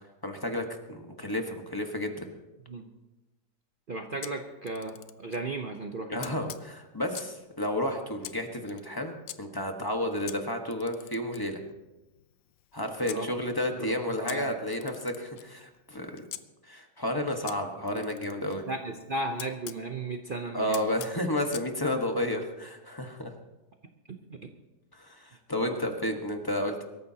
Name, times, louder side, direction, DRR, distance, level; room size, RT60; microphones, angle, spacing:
voice 1, 0.2-2.3 6.1-11.6 12.7-16.2 16.6-18.6 20.5-23.3 24.9-26.8, left 1 dB, 15° left, 3 dB, 1.2 m, -31 dB
voice 2, 3.9-6.3 13.0-13.3 13.8-13.9 14.2-14.5 17.9-18.1 18.7-20.8 24.1-24.5 25.6-25.7, right 2 dB, 45° right, 4 dB, 0.7 m, -35 dB
Camera, 4.2-5.5 6.2-7.4 8.2-9.4 10.3-13.2 14.3-16.4 17.5-19.8 20.7-21.7, left 12 dB, 75° left, 1.2 m, -45 dB
24.0 x 14.0 x 2.9 m, 1.1 s
omnidirectional pair, 1.9 m